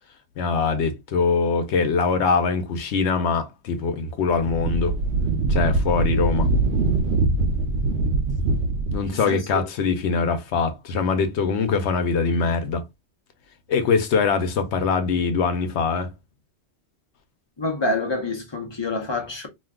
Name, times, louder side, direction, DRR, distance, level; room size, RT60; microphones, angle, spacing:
voice 1, 0.4-4.9 5.5-6.5 8.9-12.8 13.7-16.1, left 5 dB, 85° left, 0.9 m, -23 dB
Wind, 4.2-9.1, right 3 dB, 75° right, 0.9 m, -22 dB
voice 2, 9.3-9.6 17.6-19.5, left 2 dB, 30° left, 0.7 m, -27 dB
2.5 x 2.3 x 3.4 m
omnidirectional pair, 1.1 m